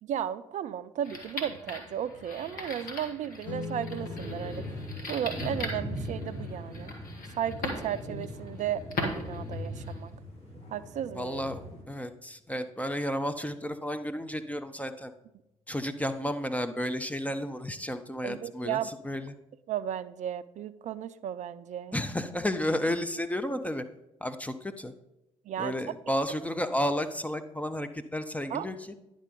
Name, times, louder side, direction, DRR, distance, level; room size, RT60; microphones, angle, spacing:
voice 1, 0.0-4.6 5.1-7.0 7.4-10.1 10.7-11.4 18.2-18.9 19.7-22.0 25.4-25.7 28.5-28.7, right 10 dB, 45° right, 14 dB, 0.4 m, -34 dB
sound 1, 1.0-10.1, left 2 dB, 55° left, 1.6 m, -40 dB
sound 2, 3.4-14.2, left 4 dB, 85° left, 0.8 m, -47 dB
sound 3, 3.9-11.8, left 1 dB, 35° left, 2.8 m, -40 dB
voice 2, 11.2-11.6 11.9-15.1 15.7-19.4 21.9-23.8 24.2-24.9 25.6-28.8, equal, 10° left, 9 dB, 0.6 m, -32 dB
10.0 x 3.8 x 5.2 m, 0.91 s
hypercardioid pair, 45°, 17 cm